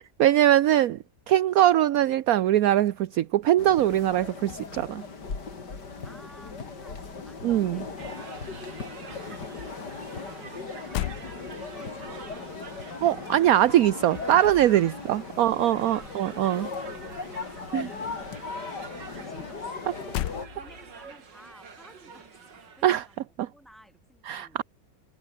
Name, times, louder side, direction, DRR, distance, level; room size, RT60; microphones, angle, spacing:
voice 1, 0.2-1.0 1.3-5.0 7.4-7.8 13.0-16.7 17.7-17.9 22.8-23.0 23.4-23.5 24.3-24.6, right 12 dB, 65° right, 1.1 m, -22 dB
sound 1, 3.6-20.5, left 4 dB, 70° left, 3.8 m, -38 dB
sound 2, 4.3-6.0 6.2-8.2 8.5-17.2 17.4-21.1, left 13 dB, 90° left, 1.4 m, -40 dB
voice 2, 6.0-11.4 11.7-12.4 14.8-23.2 23.5-24.6, equal, ahead, 7.4 m, -56 dB
sound 3, 8.0-23.2, right 5 dB, 80° right, 3.2 m, -47 dB
omnidirectional pair, 1.9 m